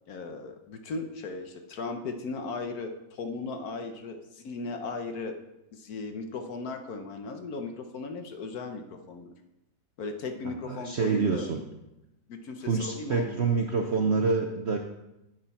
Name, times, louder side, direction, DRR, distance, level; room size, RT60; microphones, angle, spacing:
voice 1, 0.1-5.4 5.7-9.3 10.0-11.5 12.3-13.5, left 3 dB, 60° left, 6 dB, 1.2 m, -37 dB
voice 2, 10.4-11.6 12.7-14.8, right 4 dB, 60° right, 3 dB, 0.7 m, -27 dB
10.0 x 8.1 x 4.2 m, 0.92 s
omnidirectional pair, 2.0 m